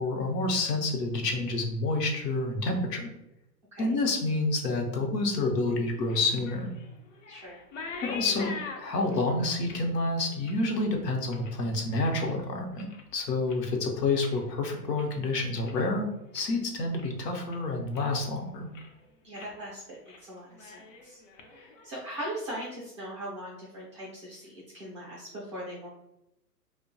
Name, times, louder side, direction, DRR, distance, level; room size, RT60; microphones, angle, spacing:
voice 1, 0.0-3.1 3.8-6.7 8.0-12.9 13.1-16.0 16.3-18.7, left 2 dB, 75° left, 2 dB, 0.8 m, -28 dB
sound 1, 5.7-12.3 12.7-13.2 13.4-15.9 16.2-16.7 17.0-17.1 17.5-18.3 18.6-19.0 19.3-19.6 19.9-20.2 20.5-22.4, left 4 dB, 50° left, 0.5 m, -45 dB
voice 2, 7.3-7.6 19.2-21.2 21.5-25.9, right 1 dB, 20° right, -6 dB, 0.4 m, -40 dB
2.7 x 2.2 x 2.6 m, 0.85 s
hypercardioid pair, 135°, 49 cm